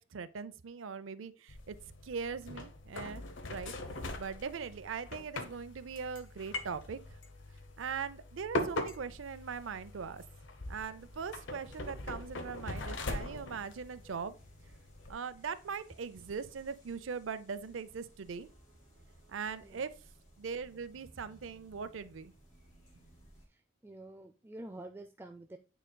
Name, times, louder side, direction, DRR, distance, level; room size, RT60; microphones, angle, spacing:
voice 1, 0.0-1.8 2.0-3.2 3.5-3.7 4.2-7.2 7.8-10.2 10.7-14.4 15.1-18.5 19.3-19.9 20.4-22.3, right 6 dB, 90° right, 0.5 m, -40 dB
sound 1, 1.5-15.1, left 2 dB, 75° left, 0.9 m, -42 dB
sound 2, 10.6-23.5, right 1 dB, 40° left, 2.6 m, -61 dB
voice 2, 23.4-25.6, right 1 dB, 10° right, 0.3 m, -48 dB
9.1 x 4.9 x 2.2 m
head